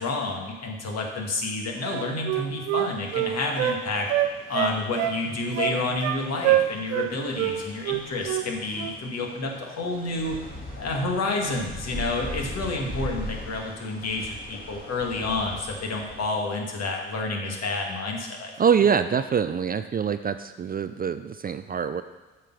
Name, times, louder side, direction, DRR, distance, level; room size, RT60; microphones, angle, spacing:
voice 1, 0.0-4.1 4.5-10.4 10.8-18.5, left 3 dB, 55° left, 1 dB, 1.9 m, -29 dB
Wind instrument woodwind instrument, 1.8-3.8 4.1-5.2 5.6-6.2 6.4-7.1 7.4-7.6 7.8-8.5 8.7-9.0, right 13 dB, 85° right, 0.7 m, -25 dB
sound 1, 2.7-16.3, left 1 dB, 30° left, 2.9 m, -41 dB
voice 2, 18.6-22.0, right 7 dB, 30° right, 11 dB, 0.4 m, -24 dB
8.2 x 4.6 x 6.0 m, 1.2 s
hypercardioid pair, 60°, 30 cm